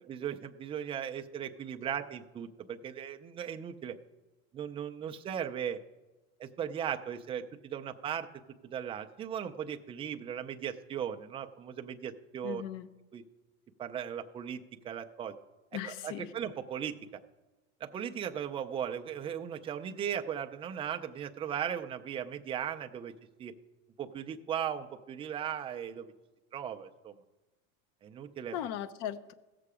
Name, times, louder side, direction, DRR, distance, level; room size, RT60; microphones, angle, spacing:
voice 1, 0.1-3.9 4.5-5.8 6.4-8.3 8.7-12.6 13.1-13.2 13.8-14.6 14.8-15.3 15.9-16.9 17.8-23.1 23.4-23.5 24.0-26.1 26.5-27.1 28.0-28.5, right 9 dB, 15° right, 7 dB, 0.3 m, -37 dB
voice 2, 12.4-12.9 15.7-16.3 28.5-29.3, left 10 dB, 50° left, 15 dB, 0.7 m, -38 dB
16.0 x 6.8 x 4.8 m, 1.1 s
supercardioid pair, 135°, 41 cm